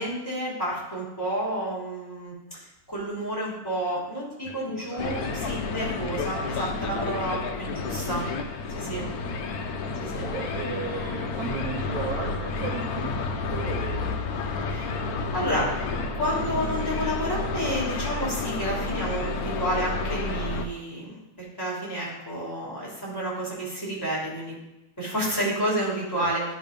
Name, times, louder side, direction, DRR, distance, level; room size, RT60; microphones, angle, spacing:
voice 1, 0.0-2.3 2.9-8.2 8.7-9.1 10.0-10.3 14.7-15.0 15.3-15.7 16.1-21.2 21.6-24.5 25.0-26.4, right 1 dB, 10° left, -7 dB, 2.9 m, -30 dB
voice 2, 4.4-5.1 10.2-14.3 15.5-16.0 26.2-26.3, right 7 dB, 70° right, 0 dB, 0.8 m, -36 dB
sound 1, 5.0-20.7, left 4 dB, 80° left, 0.8 m, -30 dB
10.5 x 3.6 x 5.1 m, 0.94 s
omnidirectional pair, 2.4 m